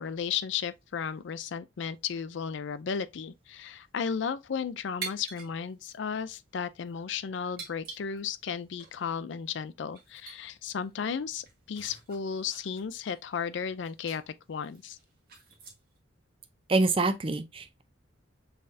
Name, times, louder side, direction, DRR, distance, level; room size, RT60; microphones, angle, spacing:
voice 1, 0.0-15.0, left 6 dB, 65° left, 0.4 m, -34 dB
sound 1, 5.0-5.5 5.8-5.9 6.7-6.9 7.6-8.5 8.8-8.9 9.5-9.6 9.9-10.4 10.8-10.9 11.3-13.5 13.8-14.2 14.6-16.0, right 5 dB, 50° right, 1.4 m, -45 dB
voice 2, 16.7-17.8, right 3 dB, 25° right, 0.4 m, -26 dB
5.6 x 3.3 x 2.6 m
head